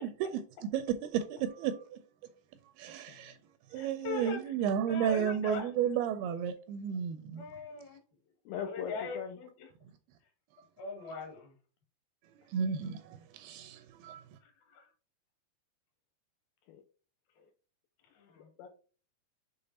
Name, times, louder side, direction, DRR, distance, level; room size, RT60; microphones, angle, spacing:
voice 1, 0.0-0.4 0.7-2.0 2.8-3.4 3.7-7.5 12.5-14.2, right 8 dB, 80° right, 2.3 m, -33 dB
voice 2, 2.9-3.4 8.5-9.4 12.6-12.7 16.7-16.8 18.4-18.7, left 7 dB, 85° left, 2.1 m, -41 dB
voice 3, 3.7-4.4 4.9-5.7 7.4-8.0 8.6-9.5 10.8-11.5 14.4-14.9 17.4-17.5 18.1-18.5, left 4 dB, 70° left, 3.2 m, -40 dB
6.7 x 3.5 x 4.1 m
omnidirectional pair, 4.7 m